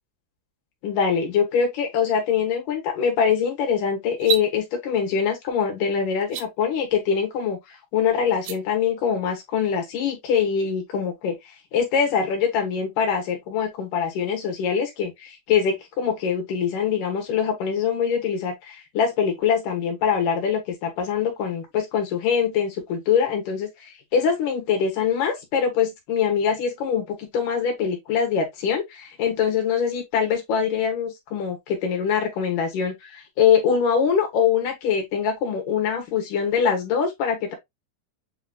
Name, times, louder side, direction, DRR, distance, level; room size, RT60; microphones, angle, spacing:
voice 1, 0.8-11.4 11.7-37.5, left 7 dB, 65° left, 2.7 m, -23 dB
sound 1, 4.1-4.5 6.2-6.5 8.3-8.6, right 10 dB, 80° right, 2.6 m, -27 dB
7.7 x 2.9 x 2.3 m
omnidirectional pair, 4.5 m